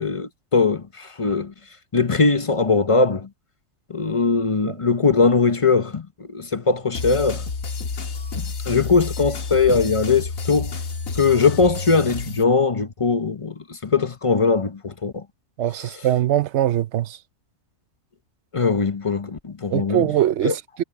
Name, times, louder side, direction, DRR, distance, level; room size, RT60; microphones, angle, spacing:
voice 1, 0.0-1.5 1.9-3.3 3.9-7.4 8.4-10.8 11.1-15.2 15.8-15.9 18.5-20.1 20.4-20.5, left 4 dB, 30° left, 0.9 m, -20 dB
sound 1, 6.9-12.4, left 4 dB, 85° left, 1.9 m, -30 dB
voice 2, 15.6-17.2 19.7-20.8, right 12 dB, 65° right, 0.8 m, -22 dB
omnidirectional pair, 1.4 m